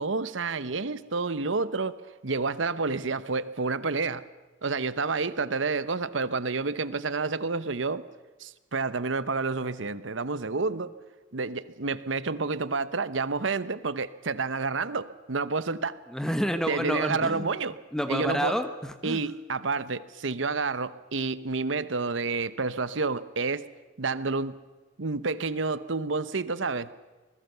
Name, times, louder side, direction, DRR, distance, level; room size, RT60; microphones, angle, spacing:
voice 1, 0.0-2.0 2.2-4.2 4.6-8.0 8.4-10.9 11.3-16.0 16.7-17.8 18.1-18.6 19.0-23.7 24.0-24.6 25.0-26.9, right 4 dB, 70° right, 15 dB, 1.0 m, -29 dB
voice 2, 16.1-17.4 17.9-19.2, equal, 5° left, 8 dB, 1.2 m, -29 dB
26.0 x 20.5 x 6.8 m, 1.2 s
head